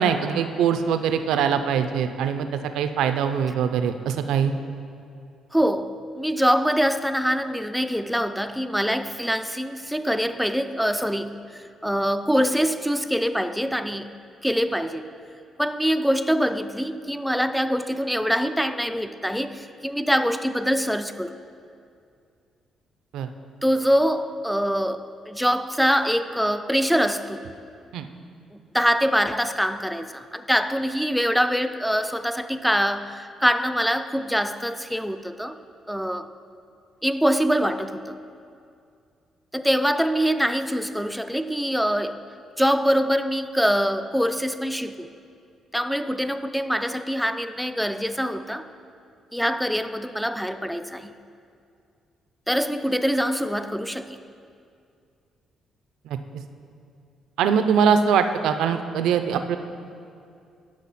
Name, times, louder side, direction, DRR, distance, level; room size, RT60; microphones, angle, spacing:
voice 1, 0.0-2.5 2.7-4.5 23.1-23.3 27.9-28.1 56.1-56.2 57.4-59.6, right 7 dB, 85° right, 9 dB, 0.4 m, -22 dB
voice 2, 5.5-14.1 14.4-15.1 15.6-21.4 23.6-27.5 28.5-35.6 35.9-36.3 37.0-38.2 39.5-42.2 42.6-45.1 45.7-48.7 49.3-51.1 52.5-54.2, equal, ahead, 11 dB, 0.4 m, -24 dB
9.8 x 6.2 x 4.2 m, 2.4 s
cardioid pair, 90°, 0 cm